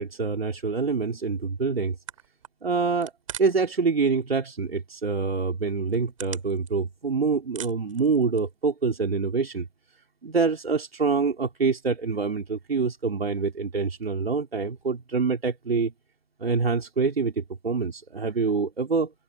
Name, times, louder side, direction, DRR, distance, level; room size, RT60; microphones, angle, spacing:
voice 1, 0.0-2.0 2.6-3.1 3.4-9.7 10.2-15.9 16.4-19.1, right 4 dB, 70° right, 3.9 m, -26 dB
sound 1, 1.7-1.8 2.1-3.7 4.0-4.6 5.0-5.1 5.7-7.1 7.4-8.6, right 10 dB, 35° right, 7.8 m, -41 dB
open air
figure-of-eight pair, 160°, 31 cm